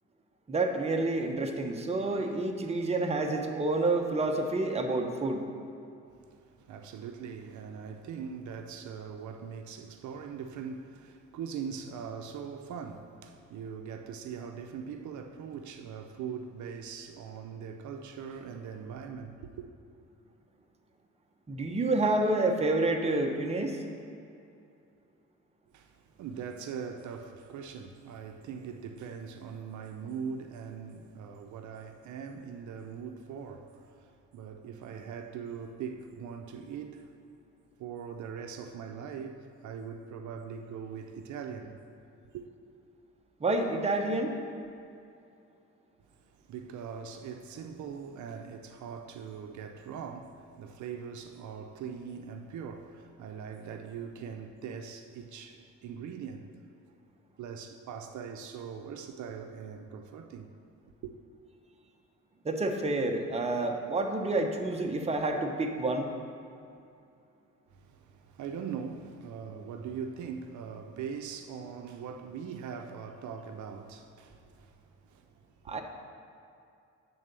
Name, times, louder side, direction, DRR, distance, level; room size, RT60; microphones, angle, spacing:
voice 1, 0.5-5.4 21.5-23.8 43.4-44.4 62.4-66.1 75.7-75.8, right 2 dB, 20° right, 0.8 m, -29 dB
voice 2, 6.3-19.7 25.7-37.2 37.8-41.8 42.3-42.4 46.0-56.5 57.4-60.5 61.0-61.1 67.7-75.8, right 6 dB, 75° right, 0.6 m, -41 dB
8.7 x 3.8 x 6.7 m
cardioid pair, 90°, 30 cm